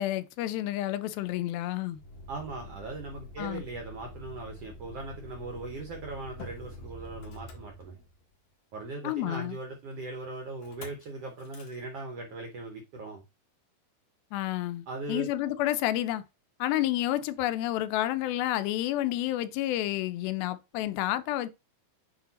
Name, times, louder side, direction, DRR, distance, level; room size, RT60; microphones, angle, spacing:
voice 1, 0.0-2.0 3.4-3.6 9.0-9.6 14.3-16.2 16.6-21.5, left 14 dB, 90° left, 2.4 m, -30 dB
Motor vehicle (road), 2.0-8.4 10.6-11.1 11.4-11.8, left 1 dB, 70° left, 3.1 m, -46 dB
voice 2, 2.3-8.0 8.7-13.2 14.9-15.3, right 3 dB, 80° right, 1.3 m, -39 dB
8.8 x 2.9 x 4.0 m
omnidirectional pair, 4.2 m